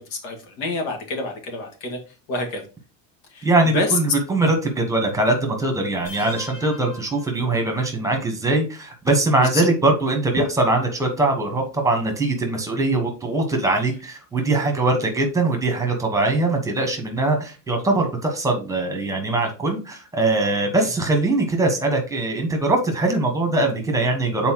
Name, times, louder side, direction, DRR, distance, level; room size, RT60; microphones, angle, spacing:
voice 1, 0.0-2.0 2.3-2.6 3.3-3.5 3.7-4.0 6.8-6.9 9.4-9.7 20.8-20.9, left 3 dB, 75° left, 3 dB, 2.1 m, -27 dB
voice 2, 3.4-24.5, right 2 dB, 5° right, 3 dB, 1.1 m, -21 dB
sound 1, 6.0-8.0, left 2 dB, 40° left, 2.6 m, -42 dB
7.9 x 4.2 x 2.9 m, 0.33 s
cardioid pair, 165°, 43 cm